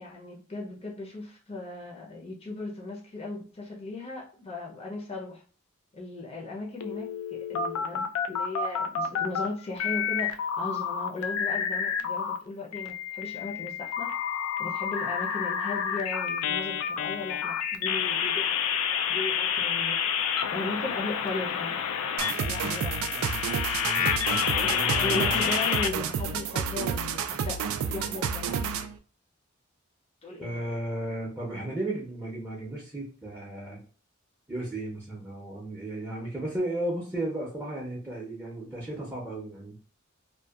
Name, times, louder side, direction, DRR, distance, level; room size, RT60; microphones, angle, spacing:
voice 1, 0.0-5.4 5.9-14.3 14.6-18.6 19.1-21.8 22.4-23.0 24.6-27.6 27.9-28.7 30.2-30.5, left 2 dB, 30° left, 0.6 m, -37 dB
sound 1, 6.8-9.5 9.8-12.4 12.7-25.9, left 7 dB, 85° left, 0.3 m, -29 dB
sound 2, 22.2-29.0, right 6 dB, 90° right, 0.3 m, -30 dB
voice 2, 23.1-23.5 23.8-25.4 30.4-33.8 34.5-39.8, right 1 dB, 10° right, 0.6 m, -35 dB
2.6 x 2.3 x 2.3 m
head